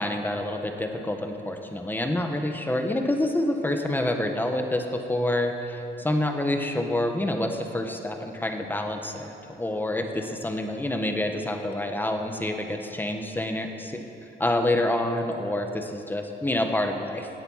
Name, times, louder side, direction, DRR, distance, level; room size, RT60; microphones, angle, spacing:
voice 1, 0.0-14.0 14.4-17.3, left 1 dB, 10° left, 4 dB, 1.3 m, -27 dB
17.0 x 7.9 x 5.7 m, 2.9 s
cardioid pair, 90°, 20 cm